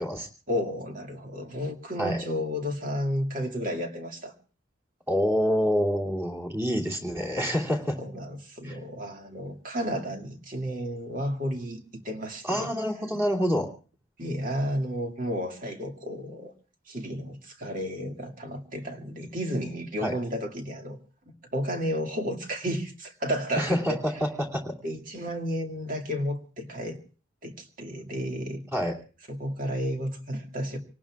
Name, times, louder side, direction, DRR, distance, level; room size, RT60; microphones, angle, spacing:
voice 1, 0.5-4.3 8.0-12.7 14.2-16.5 16.9-21.0 21.5-24.0 24.8-27.0 27.4-28.6 29.3-30.8, equal, 45° right, 3 dB, 2.1 m, -32 dB
voice 2, 5.1-8.0 8.6-8.8 12.4-13.7 20.0-20.2 23.5-24.7 28.7-29.0, equal, 15° right, 0 dB, 2.7 m, -27 dB
27.0 x 18.5 x 2.4 m, 0.37 s
head